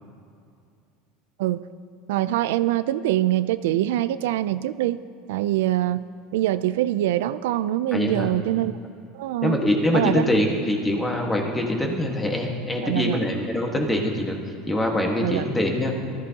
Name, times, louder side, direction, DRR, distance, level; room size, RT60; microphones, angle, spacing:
voice 1, 2.1-5.0 5.3-6.1 6.3-8.7 9.1-9.6 9.9-10.2 12.8-13.2 15.2-15.4, right 14 dB, 90° right, 14 dB, 0.4 m, -24 dB
voice 2, 7.9-8.3 9.4-14.4 14.7-15.9, left 1 dB, 10° left, 1 dB, 1.5 m, -24 dB
19.5 x 13.5 x 2.9 m, 2.4 s
supercardioid pair, 150°, 0 cm